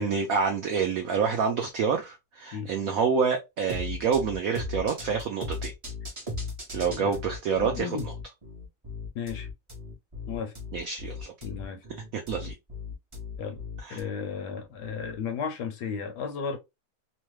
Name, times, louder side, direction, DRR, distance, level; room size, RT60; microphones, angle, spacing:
voice 1, 0.0-5.7 6.7-8.1 10.7-11.3 12.1-12.5 13.8-14.0, right 6 dB, 80° right, 0.7 m, -27 dB
sound 1, 3.7-14.0, left 3 dB, 45° right, 0.4 m, -37 dB
voice 2, 7.6-8.1 9.1-9.5 10.3-10.5 11.4-11.8 13.4-13.6 13.9-16.6, left 6 dB, 70° left, 1.0 m, -34 dB
3.1 x 2.2 x 3.0 m
omnidirectional pair, 2.1 m